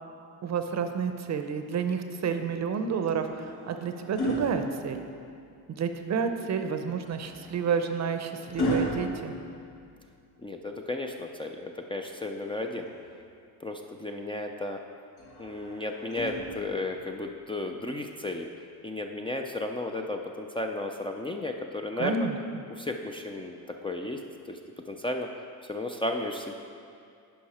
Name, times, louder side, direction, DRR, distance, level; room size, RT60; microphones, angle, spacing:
voice 1, 0.4-5.0 5.7-9.3 22.0-22.3, right 6 dB, 45° right, 7 dB, 0.7 m, -30 dB
sound 1, 3.0-5.5 7.1-10.3 12.0-13.2 15.2-17.0 18.2-18.4, equal, 75° left, 1.4 m, -36 dB
voice 2, 10.4-12.9 13.6-14.8 15.4-18.5 18.8-22.3 22.7-24.2 24.5-24.6 24.9-25.3 25.7-26.6, left 2 dB, 15° left, 3 dB, 0.4 m, -34 dB
10.0 x 5.6 x 4.2 m, 2.4 s
cardioid pair, 100°, 38 cm